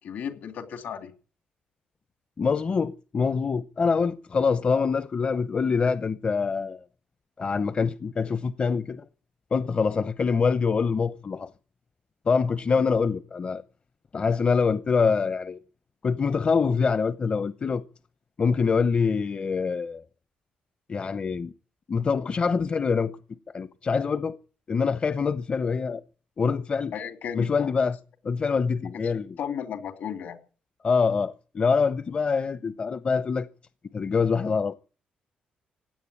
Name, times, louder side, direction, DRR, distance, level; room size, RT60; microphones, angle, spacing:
voice 1, 0.0-1.1 12.8-12.9 26.9-27.7 28.9-29.0 29.4-30.4, left 8 dB, 75° left, 2.7 m, -34 dB
voice 2, 2.4-6.8 7.4-9.0 9.5-11.5 12.3-13.6 14.1-15.6 16.0-17.8 18.4-20.0 20.9-21.5 21.9-23.2 23.5-24.4 24.7-26.0 26.4-26.9 27.3-28.0 28.2-29.4 30.8-33.5 33.9-34.7, left 5 dB, 40° left, 0.7 m, -25 dB
16.5 x 9.5 x 8.5 m
cardioid pair, 90°, 3 cm